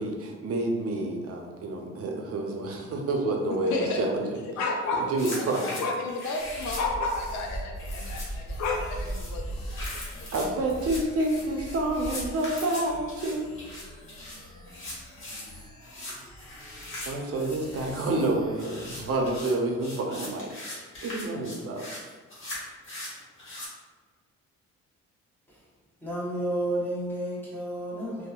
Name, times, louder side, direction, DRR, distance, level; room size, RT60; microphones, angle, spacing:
voice 1, 0.0-4.4 5.1-5.8 10.3-13.5 17.1-22.0, right 2 dB, 50° right, 0.5 m, -29 dB
voice 2, 3.7-4.3 4.6-10.3, left 2 dB, 70° left, 0.5 m, -32 dB
sound 1, 5.2-23.7, left 1 dB, 40° left, 1.2 m, -41 dB
sound 2, 6.4-12.3, right 1 dB, 10° right, 1.1 m, -38 dB
sound 3, 8.5-19.5, left 1 dB, 90° left, 0.9 m, -50 dB
voice 3, 26.0-28.3, right 1 dB, 5° left, 0.9 m, -31 dB
2.7 x 2.1 x 2.3 m
cardioid pair, 90°, 30 cm